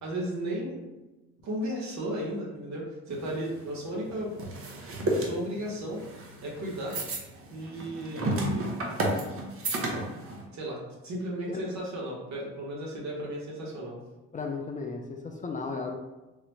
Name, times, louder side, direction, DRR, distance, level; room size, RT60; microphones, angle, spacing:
voice 1, 0.0-0.8 1.4-4.3 5.1-6.0 6.4-6.9 7.5-8.7 10.5-14.0, right 1 dB, 65° right, -3 dB, 1.1 m, -35 dB
sound 1, 3.1-10.4, right 1 dB, 50° right, 0.7 m, -32 dB
voice 2, 14.3-15.9, left 4 dB, 25° left, 2 dB, 0.4 m, -35 dB
3.8 x 2.1 x 3.0 m, 1.0 s
cardioid pair, 90°, 30 cm